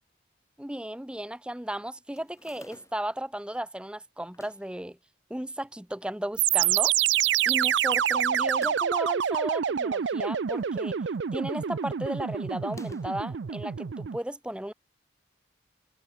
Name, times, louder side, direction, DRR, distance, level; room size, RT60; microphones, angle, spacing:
voice 1, 0.6-5.0 5.3-7.0 7.5-14.7, right 1 dB, 5° right, 0.6 m, -35 dB
sound 1, 2.1-3.2 4.2-4.8 5.5-6.2 6.6-6.7 6.8-6.9 8.4-9.0 10.1-10.8 11.1-11.5 12.6-13.3, left 2 dB, 15° left, 2.3 m, -54 dB
sound 2, 6.4-14.2, right 9 dB, 75° right, 0.5 m, -27 dB
head